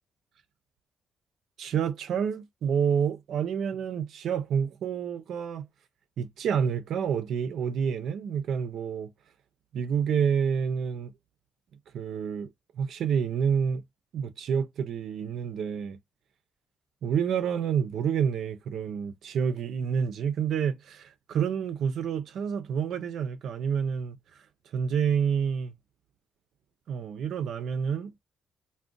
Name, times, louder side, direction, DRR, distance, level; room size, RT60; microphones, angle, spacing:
voice 1, 1.6-5.7 6.2-9.1 9.7-11.1 11.9-12.5 12.8-13.8 14.1-16.0 17.0-24.2 24.7-25.7 26.9-28.1, right 7 dB, 70° right, 0.4 m, -28 dB
2.5 x 2.1 x 3.6 m
cardioid pair, 90°, 0 cm